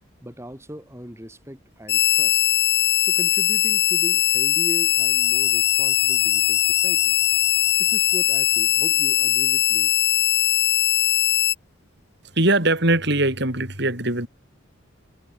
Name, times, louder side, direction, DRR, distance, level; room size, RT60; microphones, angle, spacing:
voice 1, 0.2-2.5 3.0-7.2 7.8-9.9, equal, 15° right, 7.6 m, -38 dB
sound 1, 1.9-11.5, left 13 dB, 50° left, 4.9 m, -20 dB
voice 2, 12.3-14.3, right 2 dB, 55° right, 5.1 m, -21 dB
head